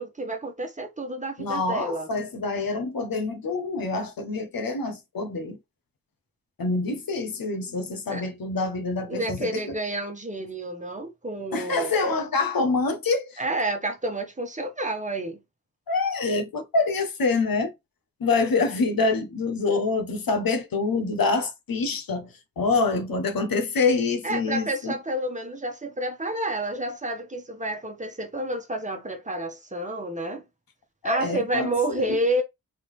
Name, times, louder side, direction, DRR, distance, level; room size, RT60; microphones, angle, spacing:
voice 1, 0.0-2.1 8.1-8.3 9.1-11.9 13.4-15.4 24.2-30.4 31.0-32.4, right 1 dB, 20° right, 1.3 m, -29 dB
voice 2, 1.4-5.6 6.6-9.6 11.5-13.4 15.9-17.7 18.2-24.9 31.0-32.2, left 3 dB, 80° left, 1.3 m, -26 dB
4.2 x 3.8 x 3.3 m
wide cardioid pair, 140°, 34 cm